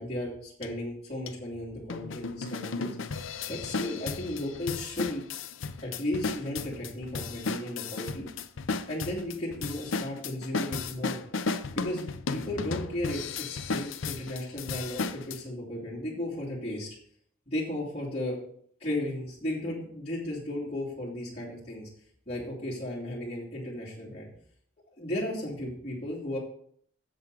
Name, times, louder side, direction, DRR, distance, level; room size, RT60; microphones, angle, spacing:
voice 1, 0.0-3.0 3.4-5.2 5.8-8.3 8.9-11.2 11.7-17.0 17.5-18.4 18.8-21.9 22.3-24.3 25.0-26.4, left 1 dB, 35° left, -7 dB, 2.8 m, -35 dB
sound 1, 0.6-0.7 1.3-1.4 1.9-15.4, left 4 dB, 70° left, 0.6 m, -34 dB
8.0 x 7.8 x 4.8 m, 0.62 s
head